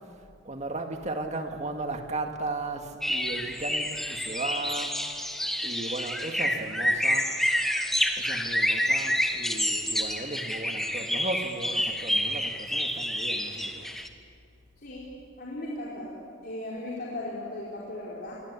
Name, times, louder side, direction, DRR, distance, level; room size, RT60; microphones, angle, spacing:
voice 1, 0.4-5.1 5.6-7.4 8.2-13.9, right 2 dB, 35° right, 4 dB, 2.1 m, -36 dB
sound 1, 3.0-14.1, equal, ahead, 1.5 m, -28 dB
voice 2, 14.8-18.4, left 1 dB, 45° left, -5 dB, 4.4 m, -37 dB
28.0 x 22.5 x 8.5 m, 2.4 s
head